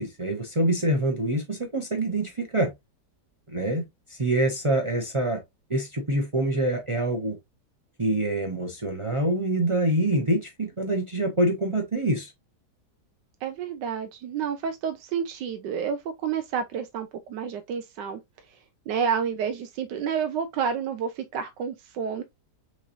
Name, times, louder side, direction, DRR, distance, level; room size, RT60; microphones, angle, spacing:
voice 1, 0.0-2.7 3.5-5.4 5.7-7.4 8.0-12.3, right 1 dB, 35° right, 0.5 m, -25 dB
voice 2, 13.4-18.2 18.9-22.2, right 7 dB, 85° right, 1.3 m, -29 dB
6.2 x 3.1 x 2.6 m
omnidirectional pair, 1.8 m